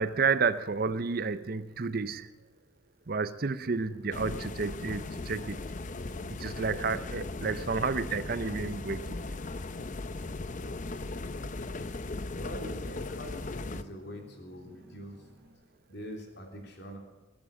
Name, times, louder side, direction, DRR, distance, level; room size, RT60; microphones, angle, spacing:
voice 1, 0.0-2.3 3.1-5.6 6.3-9.1, right 5 dB, 45° right, 14 dB, 0.6 m, -31 dB
sound 1, 3.8-15.5, equal, 10° right, 6.5 m, -58 dB
sound 2, 4.1-13.8, left 2 dB, 35° left, 0.6 m, -38 dB
voice 2, 12.4-15.2 15.9-17.0, equal, 55° left, 2 dB, 3.3 m, -44 dB
21.0 x 8.7 x 7.1 m, 1.2 s
head